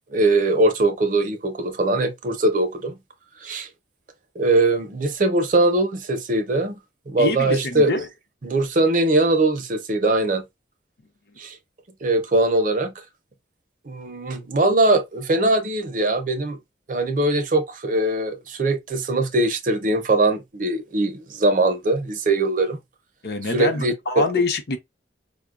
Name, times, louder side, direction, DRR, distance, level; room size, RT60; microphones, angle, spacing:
voice 1, 0.1-3.0 3.4-3.7 4.4-6.8 7.1-7.9 8.4-10.5 11.4-11.6 12.0-12.9 13.9-16.6 16.9-22.8 23.5-24.2, right 2 dB, 45° right, 0.5 m, -21 dB
voice 2, 7.2-8.1 23.2-24.8, left 3 dB, 55° left, 0.6 m, -25 dB
4.9 x 2.1 x 2.3 m
head